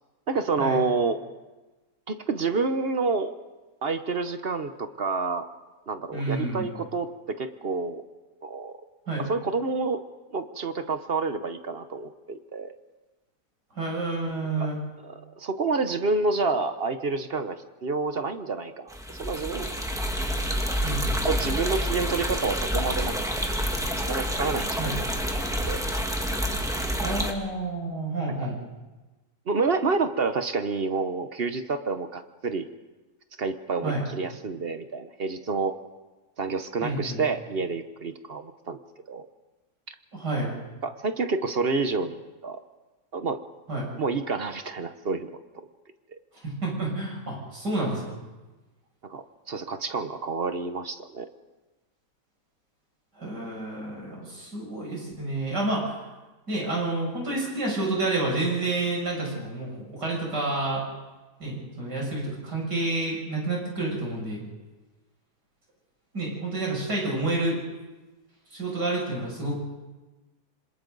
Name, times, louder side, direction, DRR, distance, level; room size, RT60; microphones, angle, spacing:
voice 1, 0.3-1.2 2.1-3.3 3.8-5.4 5.9-8.0 8.4-8.7 9.2-10.0 10.3-12.7 14.6-14.7 15.0-17.6 17.8-19.8 21.2-23.4 24.0-24.9 25.7-25.8 29.5-32.7 33.4-35.8 36.4-38.8 39.1-39.3 40.8-42.6 43.1-43.4 44.0-45.3 49.1-51.3, right 4 dB, 45° right, 9 dB, 1.0 m, -28 dB
voice 2, 6.1-6.7 9.1-9.2 13.7-14.8 20.8-21.2 24.8-25.0 27.0-28.6 33.8-34.0 36.8-37.2 40.1-40.5 43.7-43.9 46.4-48.1 53.2-56.0 56.5-60.8 61.4-64.4 66.1-67.6 68.5-69.6, right 2 dB, 85° right, -2 dB, 7.5 m, -29 dB
sound 1, 18.9-27.3, equal, ahead, 1.5 m, -28 dB
27.0 x 26.0 x 4.0 m, 1.2 s
omnidirectional pair, 1.8 m